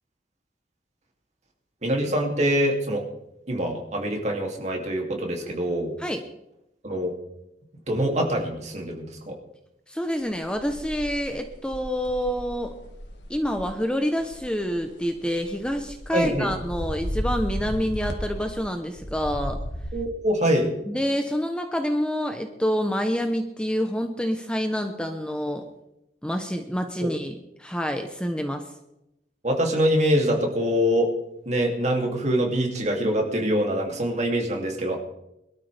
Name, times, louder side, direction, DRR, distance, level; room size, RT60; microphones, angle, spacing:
voice 1, 1.8-3.0 3.5-6.0 6.8-7.1 7.9-9.4 16.1-16.5 19.9-20.7 27.0-27.1 29.4-31.1 31.5-35.0, equal, 40° right, 1 dB, 2.8 m, -24 dB
voice 2, 9.9-12.7 13.3-19.6 20.9-25.6 26.2-27.3 27.6-28.6, equal, 5° left, 5 dB, 0.9 m, -27 dB
sound 1, 10.3-13.7 14.2-14.4 14.6-18.6 19.0-19.9, equal, 85° left, 2.1 m, -34 dB
22.5 x 12.5 x 3.5 m, 0.86 s
head